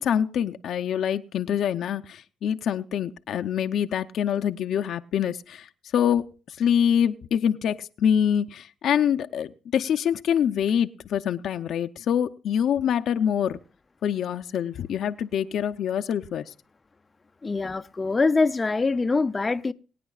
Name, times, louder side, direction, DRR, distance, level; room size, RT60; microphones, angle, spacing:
voice 1, 0.0-13.6 14.0-16.5, left 9 dB, 70° left, 0.6 m, -25 dB
voice 2, 17.4-19.7, left 3 dB, 25° left, 0.6 m, -24 dB
23.5 x 9.3 x 2.4 m
cardioid pair, 90°, 0 cm